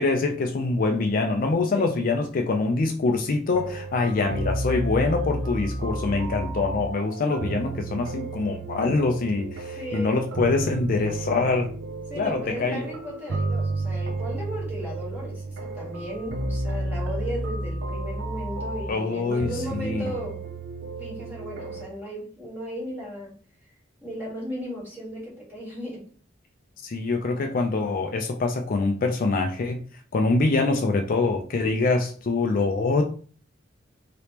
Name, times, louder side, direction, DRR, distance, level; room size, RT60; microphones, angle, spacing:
voice 1, 0.0-11.7 12.2-12.9 18.9-19.5 19.8-20.1 26.8-29.8 30.1-33.0, left 3 dB, 45° left, 4 dB, 0.4 m, -24 dB
voice 2, 1.6-1.9 9.4-9.5 9.8-10.2 12.1-20.4 21.0-23.3 24.0-26.1, equal, 10° right, -6 dB, 1.5 m, -36 dB
sound 1, 3.5-21.9, right 2 dB, 65° right, 0.4 m, -32 dB
3.3 x 2.9 x 2.8 m, 0.43 s
head